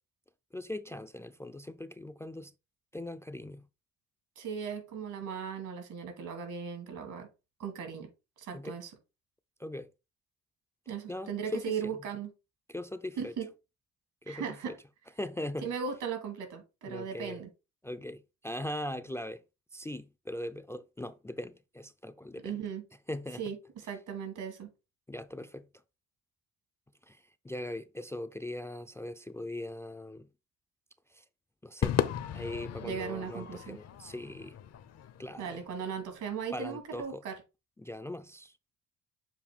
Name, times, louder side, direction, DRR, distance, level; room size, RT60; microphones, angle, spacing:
voice 1, 0.5-2.5 2.9-3.7 8.5-8.7 9.6-9.9 11.1-11.9 12.7-13.3 14.2-14.8 15.2-15.7 16.8-17.4 17.8-19.4 19.7-22.6 23.1-23.4 25.1-25.7 27.0-30.3 31.1-31.2 31.6-32.0 32.3-34.6 35.2-35.6 36.5-37.2 37.8-38.6, left 1 dB, 10° left, 0.3 m, -40 dB
voice 2, 4.4-7.3 7.6-8.1 8.4-8.9 10.9-12.3 13.2-13.5 14.3-14.8 15.6-17.5 22.4-22.8 23.4-23.6 23.9-24.7 32.8-33.8 35.4-37.3, right 6 dB, 80° right, 2.4 m, -37 dB
Crowd / Fireworks, 31.8-36.3, left 10 dB, 55° left, 0.7 m, -36 dB
7.3 x 2.7 x 5.0 m
cardioid pair, 90°, 30 cm